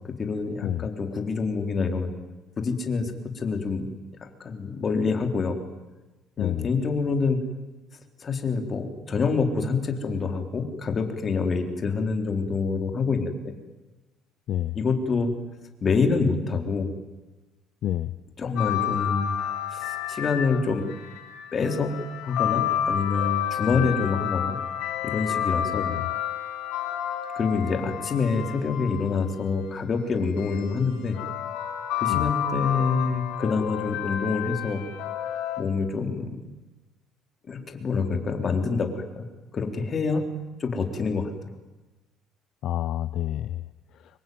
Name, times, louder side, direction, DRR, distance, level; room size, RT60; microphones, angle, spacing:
voice 1, 0.2-2.1 2.6-3.9 4.2-5.6 6.4-7.4 8.2-13.5 14.8-15.3 15.8-16.9 18.4-19.3 19.7-20.9 21.5-22.0 22.2-24.6 25.0-25.9 27.4-31.2 32.0-34.8 35.6-36.4 37.5-39.2 39.5-40.2 40.6-41.3, left 4 dB, 35° left, 5 dB, 4.0 m, -26 dB
voice 2, 6.4-6.7 14.5-14.8 17.8-18.1 23.6-23.9 25.8-26.0 32.1-32.3 42.6-43.6, left 12 dB, 60° left, 13 dB, 0.8 m, -28 dB
sound 1, 18.6-29.5 30.4-35.6, left 10 dB, 80° left, 4.3 m, -30 dB
26.0 x 23.0 x 9.6 m, 1.1 s
cardioid pair, 120°, 0 cm